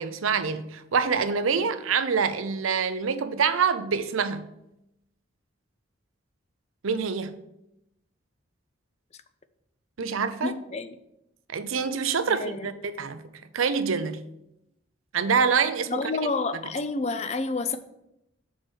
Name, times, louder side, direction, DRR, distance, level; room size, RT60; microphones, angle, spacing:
voice 1, 0.0-4.4 6.8-7.4 10.0-10.5 11.5-13.2 13.5-14.2 15.1-16.0, right 5 dB, 90° right, 0.6 m, -26 dB
voice 2, 10.4-11.0 12.3-12.7 15.9-17.8, left 3 dB, 35° left, 0.5 m, -29 dB
6.3 x 4.7 x 6.2 m
head